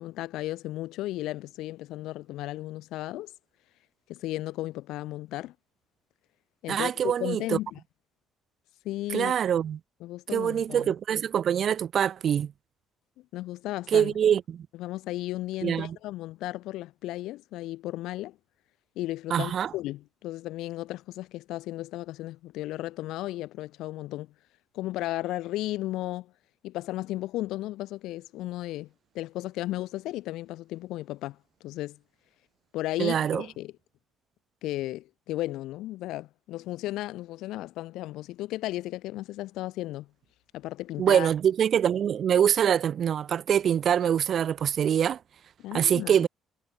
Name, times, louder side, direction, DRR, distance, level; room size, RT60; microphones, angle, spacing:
voice 1, 0.0-3.3 4.1-5.5 6.6-7.8 8.8-9.3 10.0-10.9 13.3-14.1 14.7-18.4 19.0-24.3 24.7-26.3 26.6-28.9 29.1-32.0 32.7-33.7 34.6-40.1 40.5-41.3 45.6-46.3, left 16 dB, 80° left, 1.0 m, -34 dB
voice 2, 6.7-7.6 9.1-9.8 10.3-12.5 13.9-14.7 15.6-16.0 19.3-19.7 33.0-33.4 41.0-45.2 45.7-46.3, right 9 dB, 40° right, 0.3 m, -24 dB
cardioid pair, 165°, 0 cm